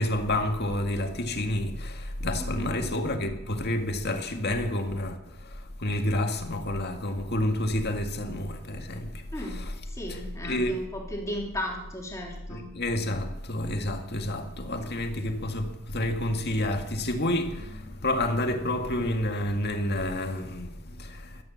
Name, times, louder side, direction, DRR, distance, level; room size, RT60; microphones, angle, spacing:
voice 1, 0.0-5.2 5.8-9.1 10.1-10.8 12.5-20.7 21.0-21.3, left 1 dB, 45° left, 2.0 m, -29 dB
voice 2, 2.4-2.8 9.3-12.7, left 1 dB, 15° left, 3.6 m, -36 dB
14.5 x 12.5 x 7.1 m
head